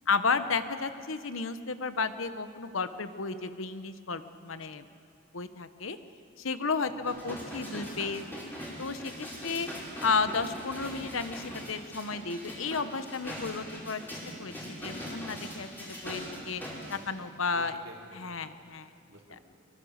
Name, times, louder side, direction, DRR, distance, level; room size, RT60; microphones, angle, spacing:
voice 1, 0.1-4.9 5.3-6.0 6.4-8.3 8.8-9.7 10.0-16.6 16.9-17.7 18.2-18.9, left 4 dB, 75° left, 11 dB, 1.0 m, -33 dB
voice 2, 6.8-7.3 17.5-19.4, right 1 dB, 85° right, -1 dB, 3.8 m, -52 dB
sound 1, 7.0-17.0 17.4-17.5, equal, 10° left, 5.9 m, -41 dB
23.5 x 23.5 x 6.5 m, 2.4 s
head